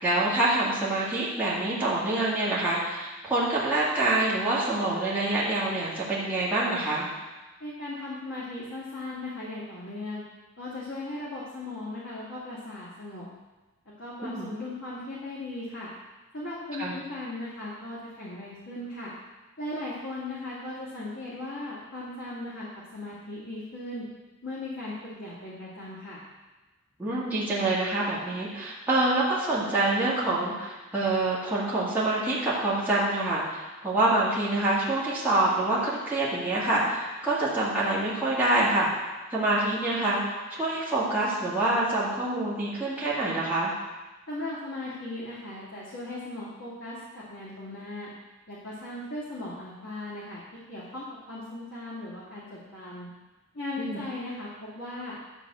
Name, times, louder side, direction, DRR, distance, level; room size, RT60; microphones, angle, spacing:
voice 1, 0.0-7.1 14.2-14.5 16.8-17.0 27.0-38.9 39.3-40.2 40.5-43.7 53.8-54.0, right 2 dB, 10° right, -9 dB, 2.1 m, -26 dB
voice 2, 7.6-10.2 10.6-13.3 14.0-15.9 16.3-19.1 19.6-22.7 22.9-24.0 24.4-26.2 44.3-48.1 48.5-50.4 50.7-53.1 53.5-55.2, left 2 dB, 75° left, -9 dB, 2.3 m, -37 dB
11.5 x 4.1 x 7.4 m, 1.2 s
head